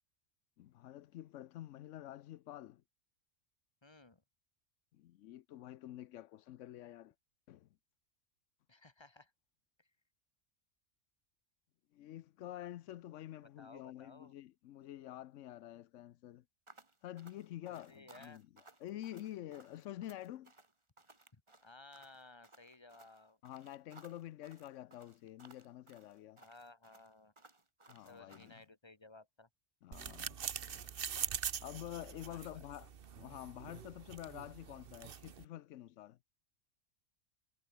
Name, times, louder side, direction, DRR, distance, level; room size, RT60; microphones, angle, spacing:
voice 1, 0.6-2.8 4.9-7.1 7.5-7.7 11.9-16.4 17.0-20.5 23.4-26.4 27.9-28.5 29.8-30.9 31.6-32.9 33.2-36.2, left 13 dB, 75° left, 0.9 m, -48 dB
voice 2, 3.8-4.2 8.7-9.3 9.8-9.9 13.6-14.3 17.7-18.4 21.3-23.4 26.4-27.3 28.0-29.5 31.9-32.6, left 2 dB, 25° left, 1.1 m, -58 dB
sound 1, 16.7-28.6, right 2 dB, 25° right, 1.9 m, -62 dB
sound 2, 29.9-35.4, right 8 dB, 50° right, 1.0 m, -43 dB
omnidirectional pair, 1.3 m